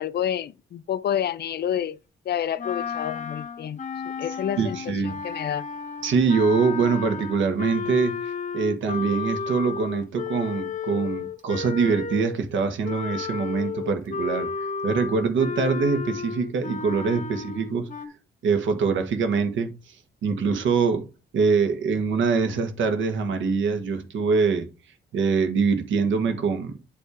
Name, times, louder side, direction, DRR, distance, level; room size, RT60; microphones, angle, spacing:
voice 1, 0.0-2.0 2.3-4.8 5.0-5.7, left 10 dB, 55° left, 0.5 m, -29 dB
sound 1, 2.6-12.4 12.8-18.1, left 5 dB, 40° left, 0.9 m, -33 dB
voice 2, 4.6-5.2 6.0-8.1 8.5-14.5 14.8-17.9 18.4-20.0 20.2-21.1 21.3-24.7 25.1-26.7, right 5 dB, 75° right, 1.6 m, -24 dB
8.3 x 3.3 x 4.9 m
cardioid pair, 90°, 20 cm